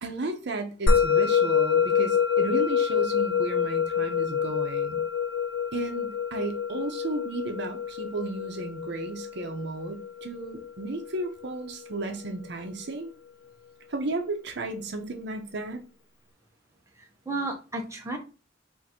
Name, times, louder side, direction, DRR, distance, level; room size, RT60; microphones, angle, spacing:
voice 1, 0.0-5.0 5.7-13.1 13.9-15.8, right 2 dB, 60° right, 0.7 m, -34 dB
Musical instrument, 0.9-11.5, left 7 dB, 80° left, 0.6 m, -26 dB
voice 2, 17.0-18.2, right 2 dB, 15° right, 0.7 m, -33 dB
3.6 x 2.6 x 4.2 m
head